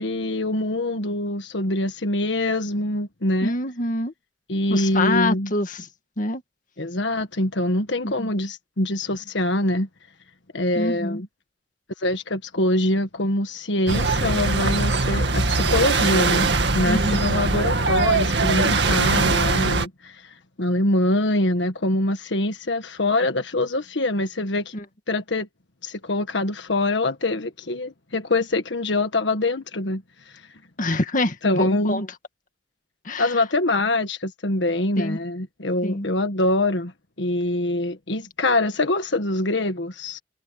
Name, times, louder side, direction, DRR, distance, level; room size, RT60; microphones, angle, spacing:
voice 1, 0.0-3.5 4.5-5.5 6.8-9.9 10.5-11.3 12.0-16.5 16.7-24.7 25.1-25.5 25.8-30.3 31.4-32.0 33.2-36.9 37.2-40.2, left 1 dB, 80° left, 1.6 m, -24 dB
voice 2, 3.4-4.1 4.7-5.9 6.2-6.4 8.0-8.3 10.8-11.2 16.8-17.2 24.7-24.8 30.8-32.1 33.1-33.3 35.0-35.2 35.8-36.1, left 2 dB, 45° left, 2.0 m, -25 dB
sound 1, 13.9-19.9, right 3 dB, 65° right, 2.2 m, -21 dB
head